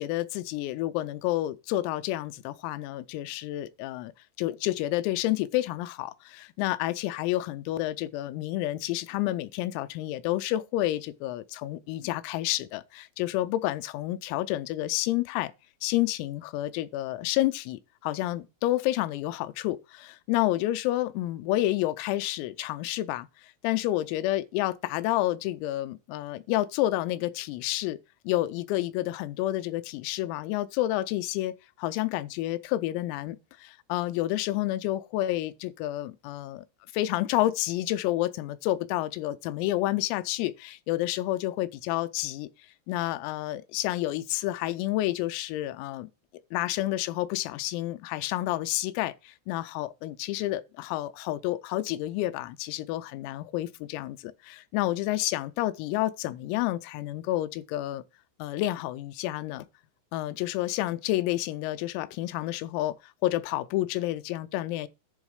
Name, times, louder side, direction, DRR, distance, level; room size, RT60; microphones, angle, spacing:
voice 1, 0.0-4.1 4.4-15.5 15.8-23.3 23.6-28.0 28.2-36.6 36.9-42.5 42.9-46.1 46.5-58.0 58.4-59.7 60.1-63.0 63.2-64.9, left 15 dB, 85° left, 3.4 m, -29 dB
10.5 x 3.6 x 6.4 m
omnidirectional pair, 6.0 m